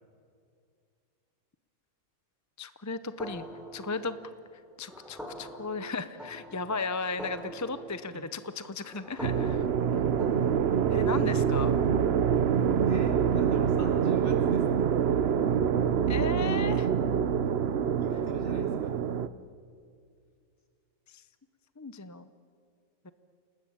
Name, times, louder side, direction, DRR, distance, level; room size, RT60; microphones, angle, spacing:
voice 1, 2.6-3.5 3.7-4.2 4.8-9.6 9.9-10.0 10.9-11.7 16.1-16.9 21.8-22.3 23.0-23.1, left 4 dB, 20° left, 12 dB, 0.5 m, -35 dB
sound 1, 3.2-11.0, equal, ahead, 3.2 m, -45 dB
voice 2, 5.8-6.6 7.4-7.6 8.1-8.2 9.6-9.7 12.8-14.8 18.0-18.9, equal, 55° left, 2 dB, 4.1 m, -48 dB
sound 2, 9.2-19.3, right 7 dB, 55° right, 0.9 m, -26 dB
28.5 x 19.5 x 8.7 m, 2.3 s
omnidirectional pair, 1.5 m